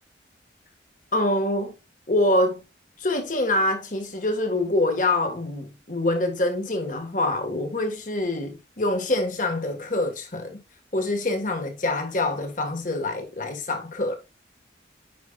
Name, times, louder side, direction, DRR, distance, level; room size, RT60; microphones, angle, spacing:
voice 1, 1.1-1.7 2.1-2.6 3.0-10.6 10.9-14.2, left 1 dB, 45° left, 1.6 m, -25 dB
9.4 x 5.2 x 2.4 m
head